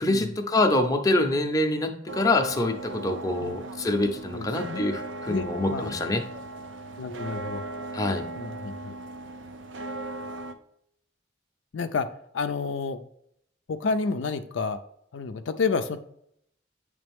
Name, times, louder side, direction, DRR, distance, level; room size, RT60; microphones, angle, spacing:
voice 1, 0.0-6.2 7.9-8.3, left 2 dB, 20° left, 4 dB, 0.6 m, -25 dB
sound 1, 2.1-10.5, right 2 dB, 85° right, 0.6 m, -38 dB
voice 2, 4.3-4.9 5.3-6.0 7.0-7.6 8.4-8.9 11.7-12.1 12.3-13.1 13.7-14.8 15.1-16.0, left 4 dB, 90° left, 8 dB, 0.5 m, -30 dB
8.7 x 3.4 x 3.5 m, 0.73 s
head